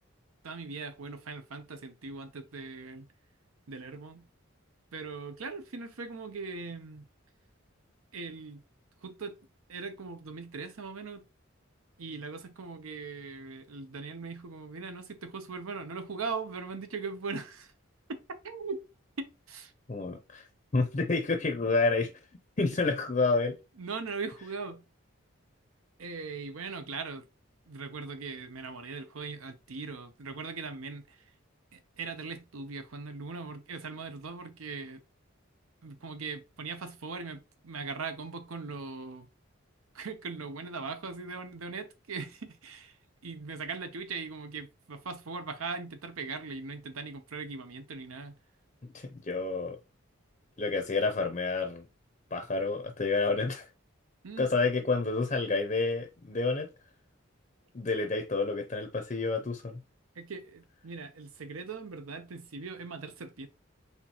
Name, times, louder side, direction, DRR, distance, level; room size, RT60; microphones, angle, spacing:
voice 1, 0.4-3.1 3.7-4.3 4.9-7.1 8.1-8.6 9.0-9.4 9.7-11.3 12.0-17.7 18.1-18.8 19.2-19.7 23.8-24.8 26.0-27.3 27.7-31.2 31.7-35.0 35.8-39.3 39.9-43.0 43.2-48.4 54.2-54.5 60.2-63.5, right 4 dB, 90° right, 0.7 m, -40 dB
voice 2, 19.9-20.5 20.7-22.1 22.6-23.6 48.9-49.8 50.6-51.9 52.3-53.7 54.4-56.7 57.7-59.8, left 3 dB, 35° left, 0.5 m, -29 dB
4.4 x 3.5 x 2.9 m
head